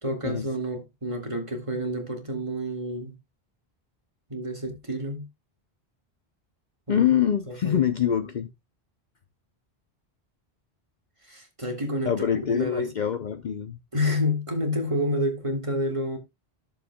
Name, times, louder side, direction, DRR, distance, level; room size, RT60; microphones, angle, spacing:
voice 1, 0.0-3.2 4.3-5.2 6.9-7.1 7.5-7.8 11.3-12.9 13.9-16.2, left 1 dB, 30° right, 2.0 m, -29 dB
voice 2, 6.9-8.5 12.1-13.8, left 9 dB, 55° left, 0.7 m, -25 dB
13.5 x 7.0 x 2.2 m
omnidirectional pair, 1.1 m